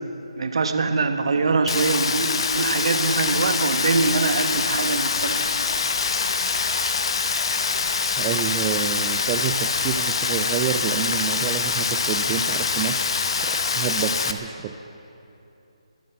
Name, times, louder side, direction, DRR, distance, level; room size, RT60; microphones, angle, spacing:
voice 1, 0.4-5.4, right 4 dB, 60° right, 7 dB, 1.4 m, -23 dB
Rain, 1.7-14.3, left 5 dB, 55° left, 1.1 m, -24 dB
voice 2, 8.2-13.0 13.4-13.5 13.8-14.7, right 9 dB, 20° right, 7 dB, 0.4 m, -28 dB
23.0 x 8.6 x 7.1 m, 2.9 s
figure-of-eight pair, 155°, 3 cm